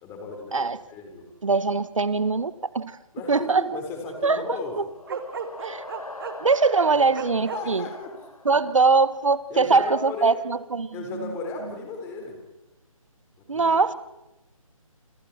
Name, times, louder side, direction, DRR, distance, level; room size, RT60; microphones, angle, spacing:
voice 1, 0.0-1.3 3.1-4.8 7.0-8.1 8.5-8.7 9.5-10.4 10.9-12.4 13.4-14.0, left 3 dB, 15° left, 2 dB, 4.4 m, -36 dB
voice 2, 1.4-3.0 3.3-3.7 4.2-4.4 4.8-4.9 5.6-5.8 6.4-7.9 8.4-10.9 11.2-11.3 13.5-13.9, right 4 dB, 65° right, 15 dB, 1.6 m, -22 dB
sound 1, 4.7-9.4, left 2 dB, 80° left, 2.3 m, -42 dB
Bark, 5.1-6.5 7.1-7.6, right 6 dB, 40° right, 2.4 m, -33 dB
28.0 x 27.5 x 4.4 m, 0.95 s
figure-of-eight pair, 150°, 18 cm